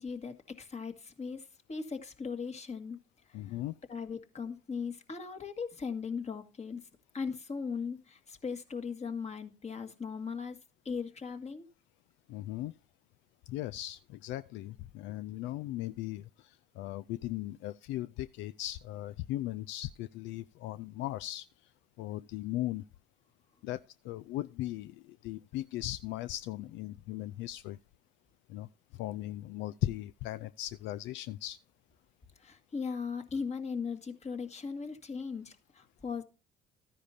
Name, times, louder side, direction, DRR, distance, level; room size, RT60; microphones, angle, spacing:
voice 1, 0.0-3.0 3.9-6.8 7.1-10.6 10.9-11.7 32.4-36.2, left 5 dB, 35° left, 1.9 m, -38 dB
voice 2, 3.3-3.7 12.3-12.7 13.5-21.5 22.0-22.8 23.6-27.8 28.5-28.7 28.9-31.6, left 15 dB, 75° left, 0.4 m, -38 dB
13.5 x 10.0 x 2.7 m
supercardioid pair, 70°, 19 cm